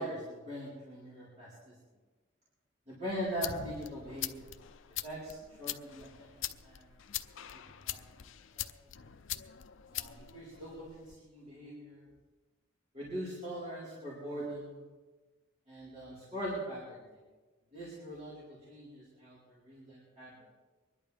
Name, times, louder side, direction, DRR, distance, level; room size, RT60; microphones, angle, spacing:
voice 1, 0.0-1.7 2.9-4.5 5.0-6.3 6.6-6.8 7.8-8.0 8.5-8.7 9.9-12.0 12.9-14.8 15.7-17.0 17.7-20.4, equal, 35° right, -10 dB, 4.3 m, -41 dB
sound 1, 3.1-11.2, left 12 dB, 75° left, 0.6 m, -43 dB
25.0 x 11.0 x 3.5 m, 1.3 s
head